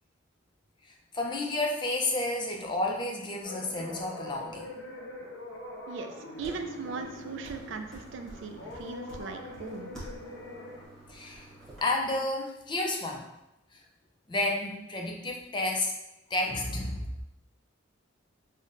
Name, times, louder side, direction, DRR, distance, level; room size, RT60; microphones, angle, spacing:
voice 1, 1.1-4.7 11.1-11.5 11.8-13.2 14.3-15.9 16.3-17.2, left 2 dB, 25° left, 1 dB, 0.4 m, -31 dB
sound 1, 3.4-10.9, left 1 dB, 75° left, 0.8 m, -43 dB
voice 2, 5.9-9.9, right 4 dB, 65° right, 6 dB, 0.3 m, -39 dB
sound 2, 6.3-11.8, right 1 dB, ahead, 1.0 m, -48 dB
5.3 x 2.1 x 2.5 m, 0.89 s
head